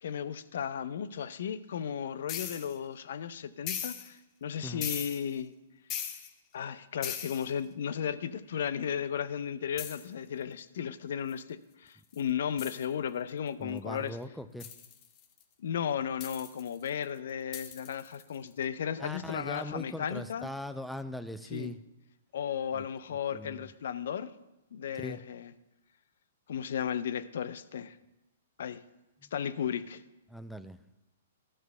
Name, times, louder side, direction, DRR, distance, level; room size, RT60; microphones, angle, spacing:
voice 1, 0.0-5.5 6.5-14.2 15.6-20.5 21.5-21.7 22.3-24.3 24.7-25.5 26.5-28.0 28.6-28.8 29.3-30.0, left 8 dB, 65° left, 15 dB, 0.5 m, -35 dB
sound 1, 2.3-2.7 3.7-4.1 4.8-5.3 5.9-6.3 7.0-7.5 9.8-10.1 11.3-11.4 12.1-12.2 12.6-12.8 14.6-15.4 16.2-17.0 17.5-18.3, left 9 dB, 35° left, 0.8 m, -39 dB
voice 2, 13.6-14.7 19.0-21.8 22.7-22.8 23.3-23.7 24.9-25.2 29.2-29.3 30.3-30.8, left 1 dB, ahead, 11 dB, 0.5 m, -40 dB
12.5 x 4.6 x 5.6 m, 0.97 s
hypercardioid pair, 120°, 0 cm